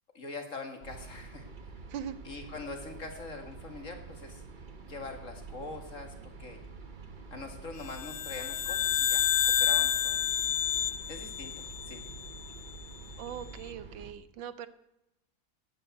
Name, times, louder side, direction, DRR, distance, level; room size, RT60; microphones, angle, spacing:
voice 1, 0.1-1.5 2.2-4.4 4.8-6.6 7.3-10.2 11.1-12.0, left 3 dB, 40° left, 5 dB, 2.3 m, -43 dB
sound 1, 0.8-14.1, right 4 dB, 35° right, 0.9 m, -47 dB
sound 2, 7.9-12.4, left 10 dB, 70° left, 0.7 m, -29 dB
voice 2, 13.2-14.7, right 9 dB, 75° right, 15 dB, 1.5 m, -40 dB
15.0 x 9.9 x 8.2 m, 0.90 s
omnidirectional pair, 2.1 m